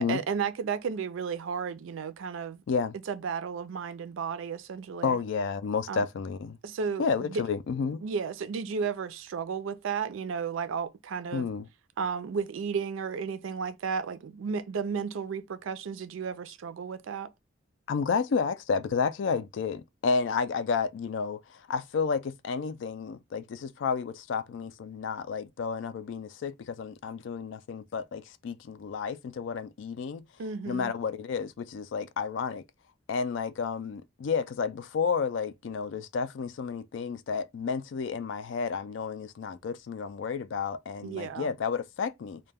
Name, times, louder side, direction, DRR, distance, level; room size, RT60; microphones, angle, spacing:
voice 1, 0.0-2.6 3.1-5.2 5.9-6.1 6.6-7.4 8.0-11.5 12.0-17.3 30.4-30.9 41.0-41.5, right 6 dB, 80° right, 0.4 m, -33 dB
voice 2, 5.0-6.6 7.0-8.0 11.3-11.7 17.9-30.2 30.7-32.6 33.1-42.4, left 5 dB, 65° left, 0.3 m, -31 dB
2.2 x 2.1 x 3.3 m
head